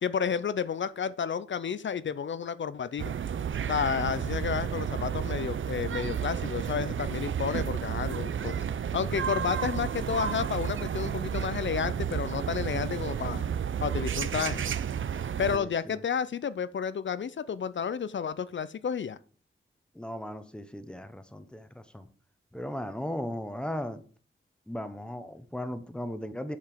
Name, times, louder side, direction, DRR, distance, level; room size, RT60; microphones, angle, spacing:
voice 1, 0.0-3.1 3.7-8.6 8.9-13.4 13.8-14.6 15.4-19.2, left 7 dB, 60° left, 0.5 m, -31 dB
sound 1, 3.0-15.6, right 8 dB, 70° right, 0.5 m, -32 dB
voice 2, 15.5-16.0 19.9-22.1 22.5-24.0 24.7-26.6, left 1 dB, 5° left, 0.8 m, -37 dB
7.3 x 5.8 x 5.0 m
wide cardioid pair, 115°, 21 cm